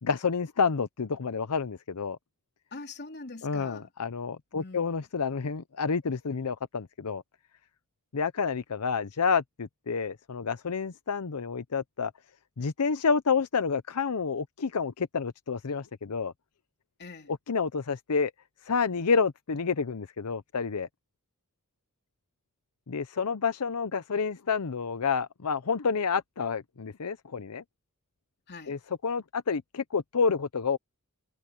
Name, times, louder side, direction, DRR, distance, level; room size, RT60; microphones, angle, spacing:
voice 1, 0.0-2.2 3.4-7.2 8.1-12.1 12.6-16.3 17.5-18.3 18.7-20.9 22.9-27.6 28.7-30.8, left 5 dB, 90° left, 0.7 m, -29 dB
voice 2, 2.7-3.9 4.5-5.0 17.0-17.3 28.5-28.8, left 3 dB, 50° left, 3.2 m, -43 dB
head